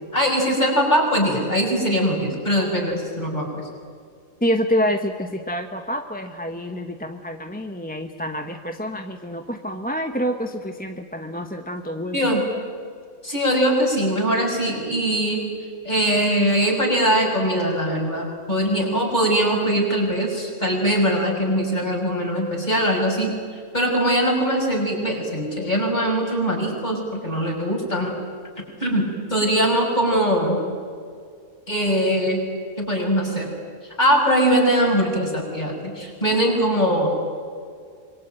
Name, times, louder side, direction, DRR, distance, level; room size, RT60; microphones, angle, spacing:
voice 1, 0.1-3.6 12.1-12.4 13.2-15.4 15.8-23.3 23.7-28.1 28.8-30.6 31.7-32.4 32.8-33.5 34.0-37.1, equal, 30° left, 0 dB, 6.4 m, -21 dB
voice 2, 4.4-12.3, equal, 5° left, 5 dB, 1.0 m, -27 dB
26.0 x 23.5 x 9.1 m, 2.2 s
omnidirectional pair, 1.5 m